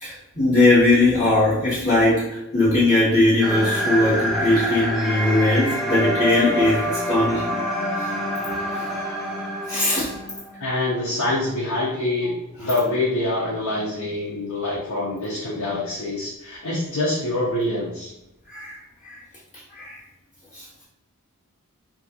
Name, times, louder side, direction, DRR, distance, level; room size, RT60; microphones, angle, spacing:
voice 1, 0.0-7.6 8.7-8.9 9.7-10.1 18.5-18.8 19.0-19.2 19.7-20.0 20.5-20.6, left 2 dB, 30° left, -10 dB, 0.8 m, -20 dB
sound 1, 3.4-10.5, equal, ahead, 0.4 m, -26 dB
voice 2, 10.6-18.1, left 2 dB, 75° left, -6 dB, 0.7 m, -25 dB
2.7 x 2.4 x 2.8 m, 0.88 s
head